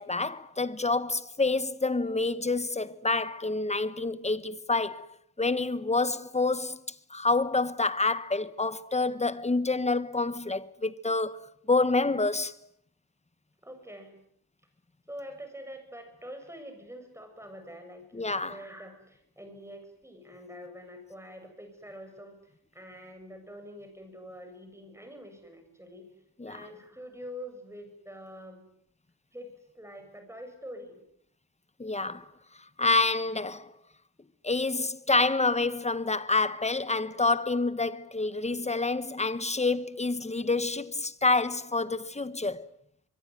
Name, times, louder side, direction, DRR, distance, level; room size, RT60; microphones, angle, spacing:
voice 1, 0.0-5.1 5.4-6.8 7.1-12.6 18.1-18.6 26.4-26.6 31.8-32.3 32.8-33.7 34.4-42.7, left 3 dB, 20° left, 1.3 m, -28 dB
voice 2, 13.6-14.2 15.1-26.1 26.5-28.6 29.3-31.0, equal, 5° right, 7.9 m, -45 dB
25.0 x 22.5 x 9.7 m
wide cardioid pair, 115°, 37 cm